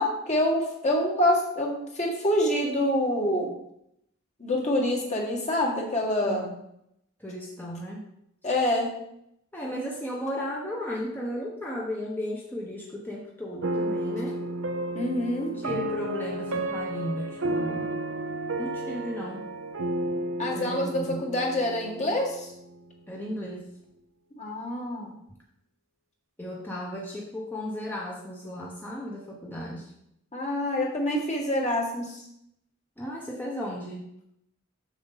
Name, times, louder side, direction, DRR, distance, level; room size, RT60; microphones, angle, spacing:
voice 1, 0.0-3.5 4.4-6.5 8.4-8.9 14.9-15.5 20.4-22.5 24.4-25.1 30.3-32.1, left 1 dB, 35° left, -1 dB, 1.8 m, -26 dB
voice 2, 7.2-8.0 9.5-14.5 15.4-17.9 18.6-19.4 20.5-21.3 23.1-23.7 26.4-29.9 33.0-34.1, equal, 10° left, -3 dB, 1.0 m, -35 dB
sound 1, 13.6-22.8, right 1 dB, 80° right, 0.8 m, -32 dB
7.4 x 6.7 x 4.1 m, 0.78 s
head